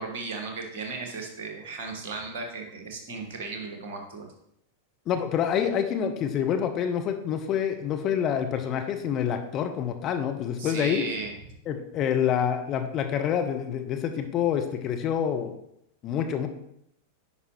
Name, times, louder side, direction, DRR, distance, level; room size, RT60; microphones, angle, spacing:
voice 1, 0.0-4.3 10.6-11.3, right 4 dB, 50° right, 3 dB, 1.4 m, -35 dB
voice 2, 5.1-11.0 11.7-15.5 16.0-16.5, left 8 dB, 35° left, 6 dB, 0.7 m, -27 dB
9.6 x 5.5 x 3.0 m, 0.77 s
figure-of-eight pair, 90°, 0 cm